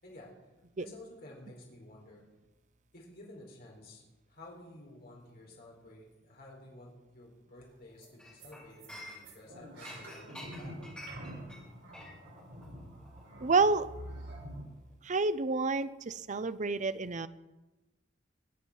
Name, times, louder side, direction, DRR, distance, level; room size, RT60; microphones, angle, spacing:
voice 1, 0.0-2.2 2.9-10.9, left 1 dB, 55° left, -2 dB, 4.4 m, -52 dB
sound 1, 7.6-7.7 8.0-8.1 8.4-8.5 8.8-14.6, right 1 dB, 75° right, 5.9 m, -46 dB
Chink clink, 8.2-9.5 9.8-14.4 14.7-14.9, equal, 5° left, 5.9 m, -50 dB
voice 2, 13.4-13.9 15.0-17.3, right 3 dB, 40° right, 14 dB, 0.6 m, -29 dB
23.5 x 8.1 x 5.7 m, 1.1 s
head